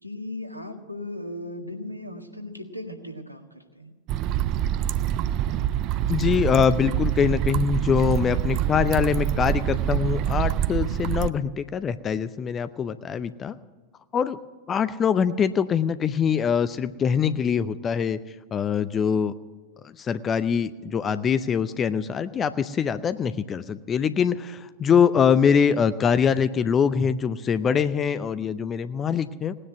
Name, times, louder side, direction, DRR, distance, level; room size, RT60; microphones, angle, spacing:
voice 1, 0.0-3.9, left 1 dB, 90° left, 4 dB, 1.7 m, -37 dB
sound 1, 4.1-11.3, right 11 dB, 40° right, 0.5 m, -25 dB
voice 2, 6.1-13.5 14.1-14.4 14.7-18.2 18.5-19.3 19.8-29.5, left 7 dB, 25° left, 14 dB, 0.6 m, -23 dB
18.5 x 9.9 x 7.8 m, 1.4 s
figure-of-eight pair, 90°, 0 cm